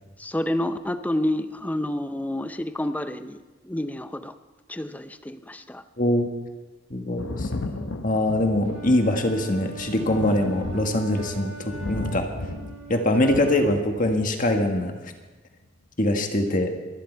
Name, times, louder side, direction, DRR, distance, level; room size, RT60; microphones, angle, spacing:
voice 1, 0.2-4.3 4.7-5.8, left 1 dB, 10° left, 10 dB, 0.6 m, -29 dB
voice 2, 6.0-6.3 6.9-12.3 12.9-15.1 16.0-16.7, left 1 dB, 45° left, 4 dB, 1.6 m, -23 dB
Thunder, 7.2-14.5 15.6-15.7, left 2 dB, 75° left, 0.9 m, -35 dB
Wind instrument woodwind instrument, 8.6-13.8, right 4 dB, 60° right, 1.7 m, -41 dB
23.0 x 10.5 x 4.6 m, 1.2 s
head